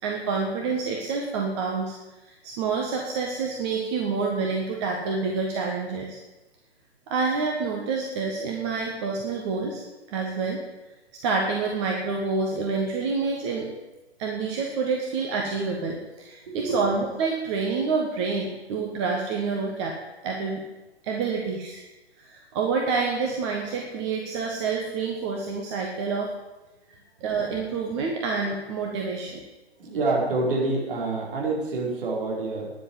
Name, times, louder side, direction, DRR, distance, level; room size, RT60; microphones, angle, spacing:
voice 1, 0.0-2.0 2.2-6.2 7.1-9.8 10.1-10.6 11.2-13.7 14.2-20.0 20.2-20.6 21.0-21.8 22.2-26.3 26.9-29.4, right 4 dB, 25° right, 0 dB, 1.3 m, -28 dB
voice 2, 16.4-16.8 29.8-32.7, right 2 dB, 55° right, -2 dB, 4.7 m, -27 dB
10.0 x 7.8 x 9.5 m, 1.1 s
figure-of-eight pair, 140°, 33 cm